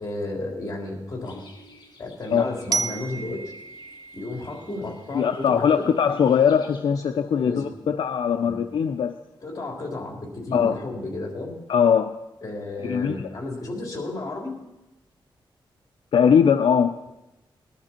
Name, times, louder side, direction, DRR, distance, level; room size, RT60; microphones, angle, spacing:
voice 1, 0.0-1.5 2.0-3.4 4.1-5.9 7.4-7.7 8.4-8.6 9.4-11.5 12.4-14.6, left 2 dB, 40° left, 0 dB, 3.6 m, -33 dB
sound 1, 1.2-6.8, left 4 dB, 60° left, 2.8 m, -50 dB
Glockenspiel, 2.7-5.6, right 5 dB, 45° right, 0.5 m, -33 dB
voice 2, 5.1-9.2 10.5-10.8 11.7-12.1 12.8-13.2 16.1-16.9, left 7 dB, 75° left, 8 dB, 0.5 m, -20 dB
20.0 x 11.5 x 4.4 m, 1.0 s
wide cardioid pair, 100°, 9 cm